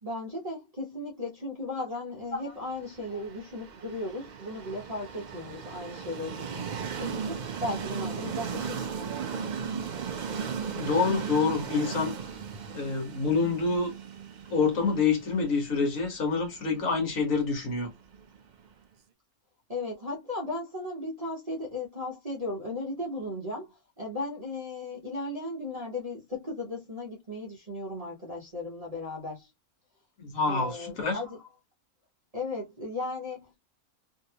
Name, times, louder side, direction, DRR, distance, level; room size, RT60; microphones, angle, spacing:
voice 1, 0.0-6.7 7.0-9.1 19.7-29.5 30.4-31.4 32.3-33.7, left 2 dB, 30° right, 0.8 m, -36 dB
Train, 2.8-18.7, right 6 dB, 75° right, 0.4 m, -37 dB
voice 2, 10.7-12.1 12.7-13.9 14.5-17.9 30.2-31.2, left 4 dB, 65° left, 1.6 m, -27 dB
3.2 x 2.7 x 2.8 m
omnidirectional pair, 1.6 m